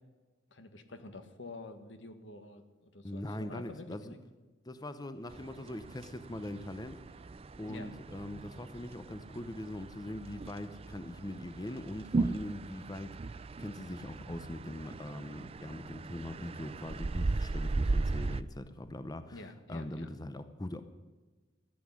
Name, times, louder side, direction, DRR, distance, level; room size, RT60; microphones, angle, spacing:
voice 1, 0.5-4.2 7.7-7.9 19.3-20.1, left 2 dB, 80° left, 8 dB, 1.6 m, -48 dB
voice 2, 3.0-4.1 4.6-7.0 7.6-20.8, left 1 dB, 20° left, 10 dB, 0.7 m, -42 dB
sound 1, 5.3-18.4, right 3 dB, 35° right, 0.4 m, -37 dB
15.0 x 8.3 x 9.9 m, 1.3 s
head